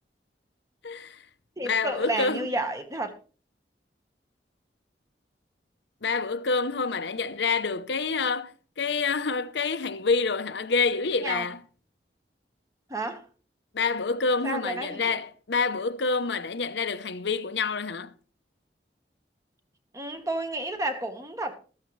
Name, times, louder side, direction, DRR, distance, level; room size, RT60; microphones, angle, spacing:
voice 1, 0.8-1.3 1.6-2.5 6.0-11.6 13.7-18.1, left 4 dB, 80° left, 0.8 m, -27 dB
voice 2, 1.6-3.1 11.2-11.5 12.9-13.2 14.4-15.2 19.9-21.5, right 2 dB, 20° right, 1.3 m, -31 dB
13.5 x 13.0 x 3.2 m
head